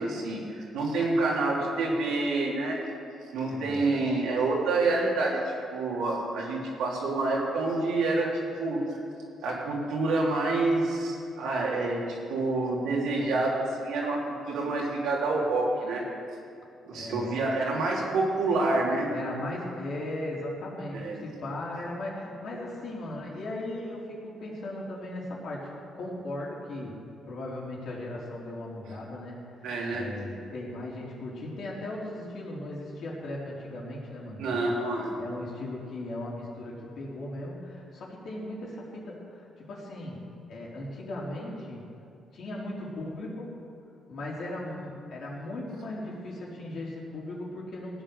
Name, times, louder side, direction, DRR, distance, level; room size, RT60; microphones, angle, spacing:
voice 1, 0.0-2.8 3.3-5.4 5.7-9.0 9.4-16.0 16.9-19.1 20.9-21.2 29.6-30.1 34.4-35.1, right 2 dB, 85° right, -3 dB, 3.2 m, -28 dB
voice 2, 3.5-3.9 16.9-17.4 19.1-27.0 27.3-34.8 35.2-41.8 42.3-43.5 44.1-48.0, left 1 dB, 65° left, -4 dB, 3.7 m, -37 dB
16.0 x 9.1 x 6.9 m, 2.5 s
cardioid pair, 90°, 0 cm